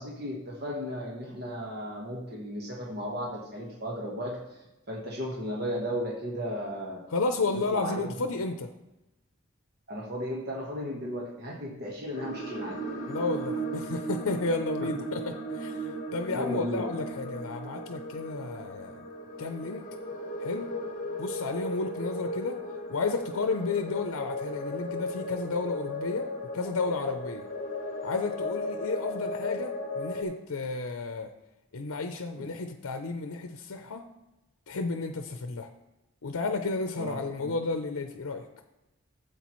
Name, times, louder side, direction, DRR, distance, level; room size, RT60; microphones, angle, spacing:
voice 1, 0.0-4.6 4.9-7.0 7.5-8.0 9.9-12.8 16.3-16.9 32.4-32.5 37.0-37.2, equal, 50° right, -2 dB, 1.3 m, -35 dB
voice 2, 7.1-8.7 13.1-15.2 15.5-19.1 19.4-19.9 20.4-20.7 21.2-22.6 22.9-27.5 28.0-31.3 31.7-34.0 34.7-35.7 36.2-38.5, left 3 dB, 85° left, 6 dB, 0.6 m, -32 dB
sound 1, 12.1-30.2, equal, 40° left, 1.4 m, -36 dB
13.5 x 7.8 x 3.1 m, 0.98 s
head